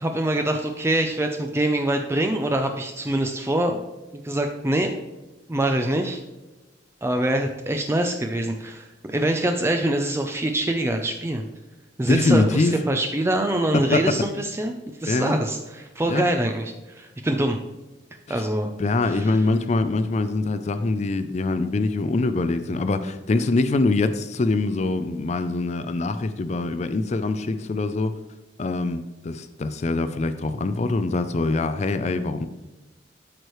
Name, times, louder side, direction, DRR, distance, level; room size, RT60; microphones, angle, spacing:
voice 1, 0.0-3.8 4.2-4.9 5.5-6.2 7.0-11.4 12.0-17.6 18.3-18.7 19.0-19.4, right 1 dB, 15° right, 4 dB, 0.5 m, -24 dB
voice 2, 12.1-12.7 13.7-14.2 15.1-15.4 16.1-16.2 18.3-18.4 18.8-28.1 28.6-32.5, left 3 dB, 40° left, 10 dB, 0.4 m, -24 dB
12.5 x 4.7 x 3.1 m, 1.1 s
head